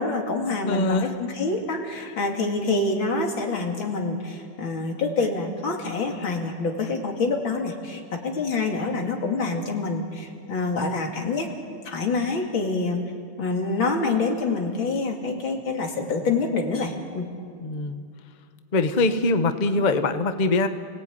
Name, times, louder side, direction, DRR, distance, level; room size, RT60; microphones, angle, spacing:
voice 1, 0.0-11.5 11.8-13.0 13.4-17.3, left 3 dB, 80° left, 2 dB, 3.3 m, -26 dB
voice 2, 0.6-1.1 2.0-2.1 17.6-18.0 18.7-20.7, left 3 dB, 30° left, 8 dB, 0.9 m, -23 dB
28.5 x 18.5 x 9.5 m, 2.3 s
omnidirectional pair, 2.1 m